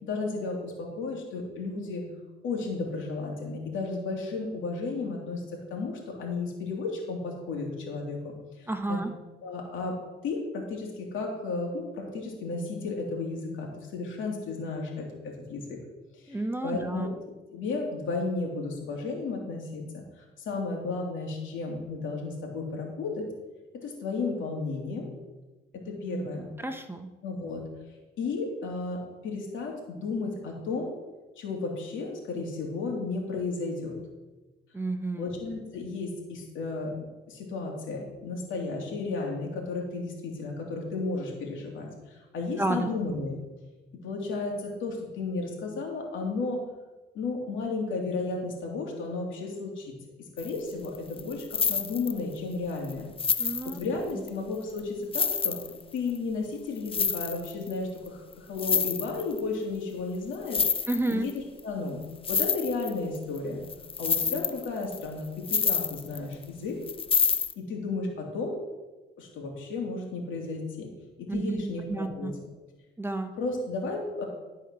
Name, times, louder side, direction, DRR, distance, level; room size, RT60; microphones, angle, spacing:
voice 1, 0.0-2.1 2.4-8.3 8.6-9.0 9.4-10.0 10.2-15.8 16.1-17.1 17.5-23.3 23.7-25.1 25.7-26.5 27.2-27.6 28.2-30.9 31.4-34.0 35.2-36.9 37.3-43.4 44.0-46.6 47.1-49.9 50.2-53.1 53.4-55.6 55.9-60.7 61.1-62.0 62.3-63.6 64.0-66.8 67.6-68.6 69.2-70.9 71.2-72.3 73.3-74.2, left 3 dB, 80° left, 0 dB, 2.8 m, -33 dB
voice 2, 8.7-9.1 16.3-17.1 26.1-26.3 26.6-27.1 34.7-35.3 42.6-42.9 53.4-53.8 60.9-61.3 71.3-72.3 73.0-73.3, right 2 dB, 10° right, 7 dB, 0.8 m, -31 dB
sound 1, 50.4-50.6 50.8-52.4 52.8-52.9 53.2-54.3 54.8-54.9 55.1-56.2 56.8-57.7 58.1-58.2 58.3-59.4 60.3-61.3 61.6-61.7 62.0-63.4 63.7-66.4 66.8-67.5, left 6 dB, 30° left, 0.5 m, -28 dB
12.5 x 4.8 x 6.1 m, 1.2 s
cardioid pair, 90°, 20 cm